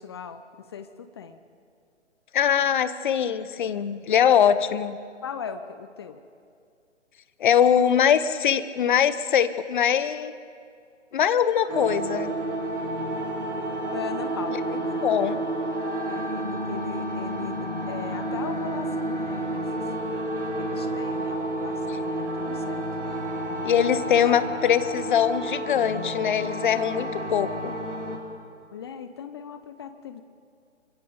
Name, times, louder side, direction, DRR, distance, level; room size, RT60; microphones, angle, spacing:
voice 1, 0.0-1.4 5.2-6.2 13.9-15.3 16.1-19.9 20.5-23.2 23.5-24.2 28.7-30.2, left 6 dB, 20° left, 10 dB, 0.6 m, -39 dB
voice 2, 2.3-5.0 7.4-10.3 11.1-12.3 15.0-15.4 23.6-27.7, left 8 dB, 40° left, 13 dB, 1.0 m, -22 dB
sound 1, 11.7-28.2, right 1 dB, 75° right, 3.5 m, -30 dB
28.0 x 25.0 x 4.0 m, 2.3 s
figure-of-eight pair, 135°, 36 cm